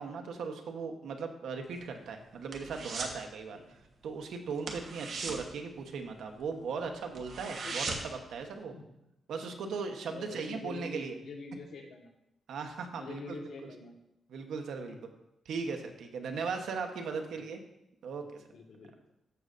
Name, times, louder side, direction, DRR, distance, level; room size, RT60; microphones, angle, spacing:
voice 1, 0.0-8.7 9.3-11.1 12.5-13.7 14.3-15.1 15.4-17.6 18.0-18.4, right 5 dB, 85° right, 5 dB, 1.0 m, -38 dB
sound 1, 1.6-3.2 3.5-3.8 4.1-4.2 4.6-6.5 6.8-6.9 7.2-8.3 8.6-8.7, right 3 dB, 60° right, 1.2 m, -39 dB
voice 2, 7.4-7.9 8.7-8.9 10.1-12.1 12.9-13.9 14.7-15.0 16.5-16.7 17.1-17.5 18.2-19.1, left 3 dB, 75° left, 2 dB, 1.4 m, -46 dB
13.5 x 6.6 x 2.6 m, 0.85 s
wide cardioid pair, 140°, 0 cm